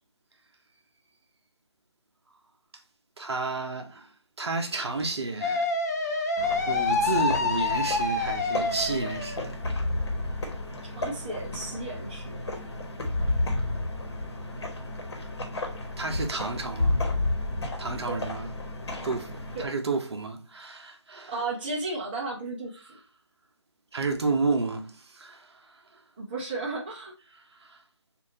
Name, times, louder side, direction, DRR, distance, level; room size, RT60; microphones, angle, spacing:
voice 1, 3.2-4.1 4.4-6.3 6.7-9.6 16.0-17.0 17.8-18.5 19.0-21.4 23.9-25.8 27.3-27.8, right 3 dB, 60° right, 0.7 m, -31 dB
sound 1, 5.4-9.5, left 3 dB, 35° left, 0.5 m, -27 dB
sound 2, 6.4-19.7, left 2 dB, 60° left, 1.2 m, -32 dB
voice 2, 10.8-12.4 18.1-18.2 19.5-19.7 21.3-23.0 26.2-27.1, right 3 dB, 20° right, 0.6 m, -34 dB
3.5 x 2.5 x 4.0 m
figure-of-eight pair, 160°, 15 cm